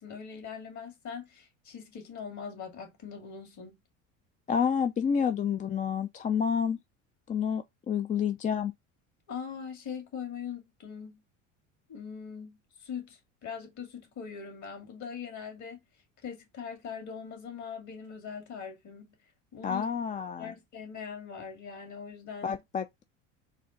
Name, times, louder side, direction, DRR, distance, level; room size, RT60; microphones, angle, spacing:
voice 1, 0.0-3.8 9.3-11.2 11.9-15.8 16.2-19.2 19.5-19.9 20.4-22.5, left 6 dB, 50° left, 2.1 m, -41 dB
voice 2, 4.5-6.8 7.3-8.7 19.6-20.5 22.4-23.0, left 7 dB, 20° left, 0.4 m, -29 dB
4.1 x 2.4 x 3.9 m
hypercardioid pair, 80°, 38 cm